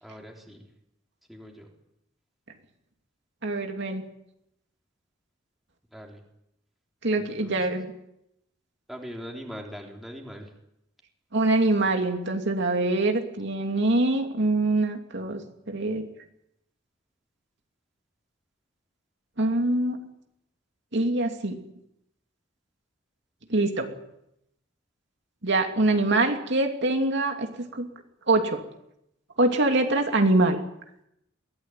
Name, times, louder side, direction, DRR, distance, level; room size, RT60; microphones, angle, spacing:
voice 1, 0.0-0.7 1.3-1.7 5.9-6.2 7.2-7.5 8.9-10.5, equal, ahead, 1 dB, 3.7 m, -41 dB
voice 2, 3.4-4.0 7.0-7.9 11.3-15.4 15.7-16.1 19.4-20.0 20.9-21.6 23.5-23.9 25.4-27.9 28.3-28.6 29.4-30.6, right 2 dB, 60° right, 4 dB, 2.7 m, -24 dB
23.0 x 16.5 x 9.2 m, 0.81 s
head